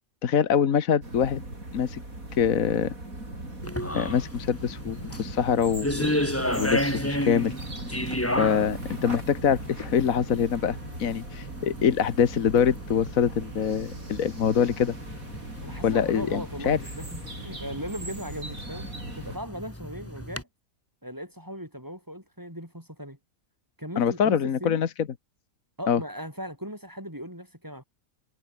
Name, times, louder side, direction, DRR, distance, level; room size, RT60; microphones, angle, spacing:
voice 1, 0.2-1.4 1.7-2.0 2.4-2.9 3.9-6.2 6.6-7.5 7.9-8.0 8.4-15.0 15.8-16.8 24.0-24.9 25.9-26.0, left 7 dB, 70° left, 1.6 m, -24 dB
sound 1, 1.0-19.4, right 2 dB, 75° right, 7.8 m, -39 dB
sound 2, 3.6-20.4, left 1 dB, 10° left, 3.4 m, -34 dB
voice 2, 15.6-18.9 19.1-20.5 21.0-23.2 23.8-24.8 25.8-27.8, equal, 15° right, 5.5 m, -38 dB
omnidirectional pair, 1.5 m